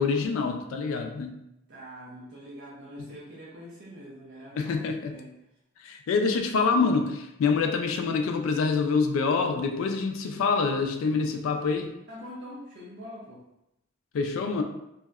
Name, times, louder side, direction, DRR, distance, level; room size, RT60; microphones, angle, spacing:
voice 1, 0.0-1.4 4.6-5.2 5.8-11.9 14.1-14.6, left 4 dB, 75° left, 6 dB, 0.3 m, -26 dB
voice 2, 1.7-5.3 12.1-13.4, equal, 55° right, -6 dB, 0.4 m, -44 dB
2.7 x 2.1 x 2.3 m, 0.86 s
head